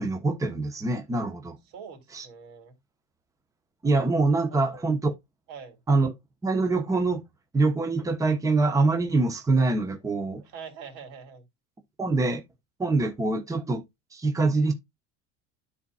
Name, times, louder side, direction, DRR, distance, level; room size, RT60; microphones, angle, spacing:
voice 1, 0.0-1.6 2.1-2.3 3.8-5.1 5.9-6.1 6.4-7.2 7.5-10.4 12.0-12.4 12.8-13.8 14.1-14.7, right 3 dB, 10° right, 1.0 m, -24 dB
voice 2, 1.7-2.7 4.7-4.9 5.5-5.8 10.4-11.5, right 6 dB, 60° right, 3.5 m, -44 dB
12.5 x 4.2 x 2.4 m
supercardioid pair, 140°, 31 cm